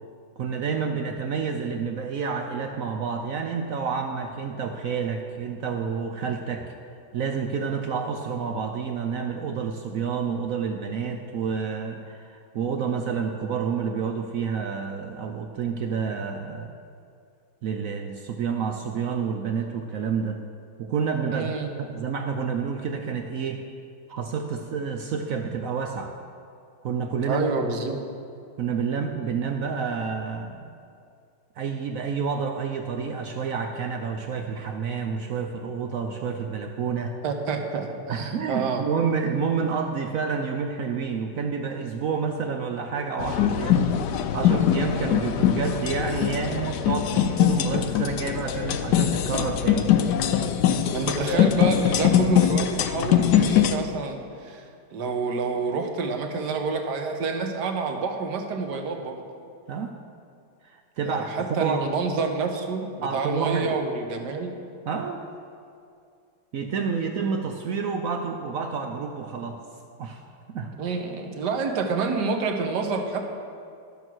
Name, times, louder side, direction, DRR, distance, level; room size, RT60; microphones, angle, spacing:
voice 1, 0.4-6.7 7.1-16.7 17.6-20.4 20.8-21.5 21.8-23.6 24.1-26.1 26.8-27.5 28.6-30.7 31.6-37.2 38.1-49.9 59.7-59.9 60.6-61.9 63.0-63.8 64.8-65.2 66.5-69.6 70.0-70.2 70.5-70.7, right 6 dB, 80° right, 5 dB, 0.7 m, -29 dB
voice 2, 21.2-21.7 27.3-28.0 37.2-38.8 50.9-54.7 54.9-59.2 61.0-64.6 70.8-73.2, right 4 dB, 60° right, 4 dB, 1.5 m, -28 dB
sound 1, 43.2-53.7, left 10 dB, 70° left, 1.1 m, -22 dB
12.5 x 7.1 x 6.2 m, 2.4 s
omnidirectional pair, 2.1 m